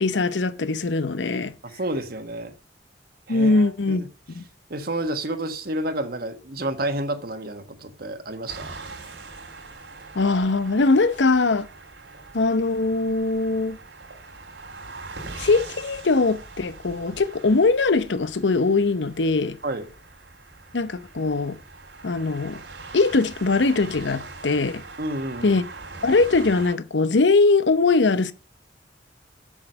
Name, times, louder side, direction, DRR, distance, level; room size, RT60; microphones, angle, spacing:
voice 1, 0.0-1.5 3.3-4.0 4.3-4.4 10.1-11.7 12.3-13.8 15.4-19.6 20.7-21.6 22.0-22.6 22.9-24.8 25.4-25.6 26.0-28.3, left 3 dB, 85° left, 0.8 m, -21 dB
voice 2, 1.6-2.5 3.3-4.1 4.7-8.8 19.6-19.9 25.0-25.6, right 1 dB, 55° right, 1.4 m, -30 dB
sound 1, 8.5-26.7, right 3 dB, 90° right, 3.0 m, -42 dB
7.3 x 7.2 x 7.8 m
head